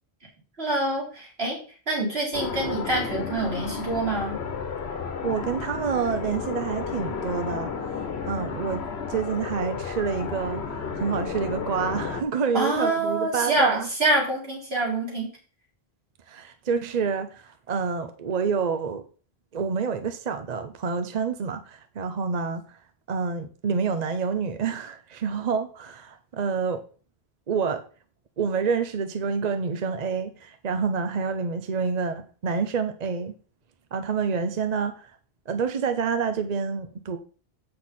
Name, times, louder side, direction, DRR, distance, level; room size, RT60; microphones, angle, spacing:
voice 1, 0.6-1.6 1.9-4.4 12.5-15.3, right 2 dB, 75° right, 3.5 m, -26 dB
sound 1, 2.3-12.2, left 5 dB, 85° left, 1.2 m, -32 dB
voice 2, 5.2-8.8 9.1-13.9 16.3-19.0 19.5-22.8 23.1-26.8 27.5-27.8 28.4-33.3 33.9-35.1 35.5-37.2, right 5 dB, 45° right, 0.7 m, -28 dB
7.9 x 6.6 x 4.2 m
omnidirectional pair, 1.0 m